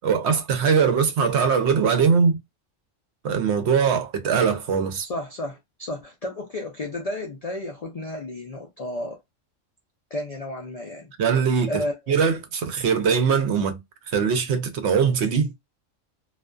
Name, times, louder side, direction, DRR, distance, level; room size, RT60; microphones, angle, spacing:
voice 1, 0.0-2.4 3.2-5.1 11.2-11.7 12.1-13.8 14.1-15.5, right 6 dB, 70° right, 0.8 m, -21 dB
voice 2, 5.0-9.2 10.1-11.1 11.7-12.2, left 1 dB, 65° left, 0.3 m, -32 dB
2.4 x 2.2 x 2.3 m
omnidirectional pair, 1.3 m